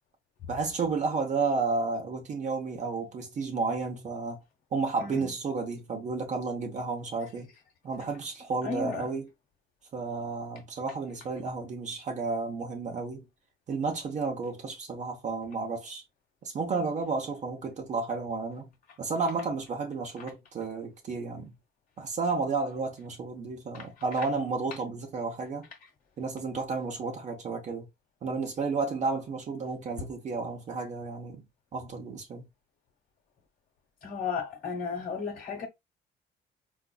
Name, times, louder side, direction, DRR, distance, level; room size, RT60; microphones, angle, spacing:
voice 1, 0.5-4.4 4.7-7.5 7.8-9.3 9.9-13.2 13.7-16.0 16.4-18.7 19.0-21.5 22.0-25.7 26.2-27.9 28.2-31.4 31.7-32.4, right 4 dB, 45° right, 0.8 m, -32 dB
voice 2, 8.6-9.1 23.7-23.9 34.0-35.7, left 5 dB, 55° left, 1.1 m, -34 dB
3.8 x 2.5 x 2.3 m
cardioid pair, 110°, 17 cm